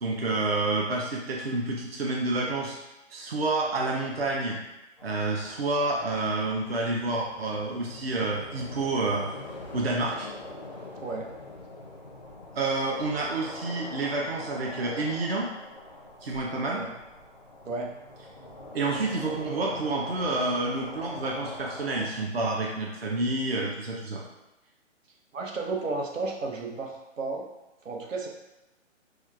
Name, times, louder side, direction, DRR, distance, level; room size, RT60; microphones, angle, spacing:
voice 1, 0.0-2.8 3.1-4.6 5.0-9.3 9.7-10.3 12.5-15.5 16.2-16.8 18.7-24.2, right 2 dB, 55° right, -2 dB, 0.6 m, -29 dB
sound 1, 5.0-22.1, left 2 dB, 40° left, 0.4 m, -43 dB
voice 2, 11.0-11.3 16.7-16.9 17.7-17.9 25.3-27.5 27.8-28.3, right 3 dB, 85° right, 0 dB, 0.9 m, -33 dB
6.2 x 2.3 x 2.3 m, 0.98 s
hypercardioid pair, 180°, 38 cm